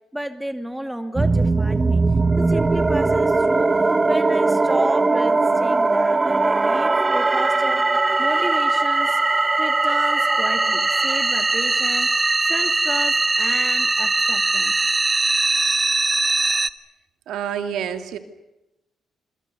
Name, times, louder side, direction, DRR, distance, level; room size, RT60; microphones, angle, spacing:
voice 1, 0.1-2.0 2.4-3.7 4.1-7.8 8.2-9.2 9.6-12.1 12.5-14.7, right 1 dB, 5° right, 7 dB, 2.4 m, -31 dB
sound 1, 1.2-16.7, right 3 dB, 20° right, 0.9 m, -20 dB
voice 2, 17.3-18.2, right 8 dB, 90° right, 7 dB, 2.4 m, -28 dB
27.0 x 23.0 x 6.9 m, 0.93 s
cardioid pair, 125°, 0 cm